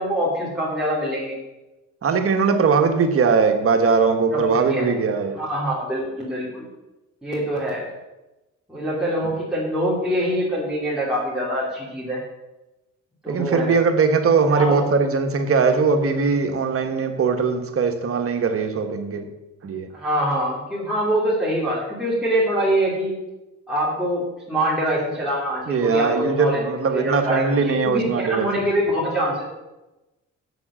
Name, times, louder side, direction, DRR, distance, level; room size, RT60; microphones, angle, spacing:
voice 1, 0.0-1.4 4.5-4.9 5.3-6.7 7.2-7.9 8.7-12.2 13.2-13.7 14.5-14.8 19.9-23.1 23.7-29.4, equal, ahead, -7 dB, 3.1 m, -24 dB
voice 2, 2.0-5.4 13.3-19.3 19.6-19.9 25.7-28.5, right 5 dB, 50° right, 6 dB, 1.4 m, -20 dB
7.7 x 7.4 x 7.4 m, 1.0 s
cardioid pair, 90°, 30 cm